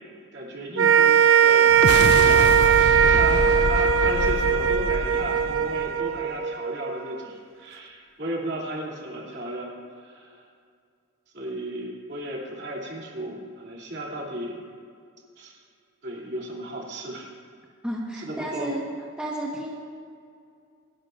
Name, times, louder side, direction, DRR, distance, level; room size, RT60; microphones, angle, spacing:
voice 1, 0.3-1.2 1.4-2.8 3.1-10.4 11.3-14.6 15.4-15.6 16.0-17.3 18.2-18.7, right 1 dB, 55° right, -3 dB, 2.9 m, -34 dB
sound 1, 0.8-7.2, right 8 dB, 70° right, 0.6 m, -19 dB
sound 2, 1.7-6.2, left 3 dB, 55° left, 0.5 m, -27 dB
voice 2, 17.8-18.8 19.2-19.7, right 1 dB, 5° right, -4 dB, 1.3 m, -31 dB
27.0 x 10.5 x 2.6 m, 2.3 s
head